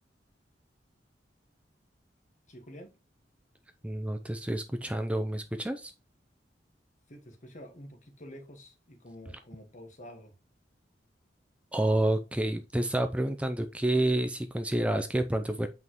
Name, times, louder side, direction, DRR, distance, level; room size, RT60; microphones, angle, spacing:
voice 1, 2.5-2.9 7.1-10.3, equal, 45° left, 1.6 m, -48 dB
voice 2, 3.8-5.9 11.7-15.7, right 1 dB, 5° right, 0.5 m, -29 dB
8.1 x 5.5 x 3.0 m
head